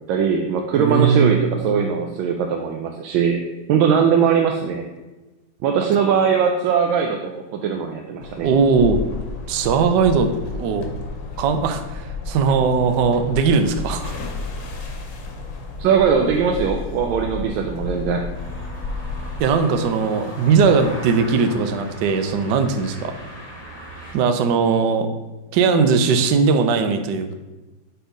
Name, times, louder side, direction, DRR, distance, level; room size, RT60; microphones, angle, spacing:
voice 1, 0.1-3.4 3.7-4.9 5.6-8.5 15.8-18.2, right 7 dB, 90° right, 3 dB, 1.4 m, -20 dB
voice 2, 0.8-1.5 8.4-9.0 9.5-10.3 10.5-10.9 11.4-14.1 19.4-23.1 24.1-25.1 25.5-27.3, right 5 dB, 70° right, 8 dB, 1.2 m, -19 dB
sound 1, 8.2-19.4, left 3 dB, 70° left, 1.6 m, -32 dB
sound 2, 18.3-24.1, equal, 15° left, 1.4 m, -38 dB
5.5 x 4.5 x 5.0 m, 1.1 s
omnidirectional pair, 2.1 m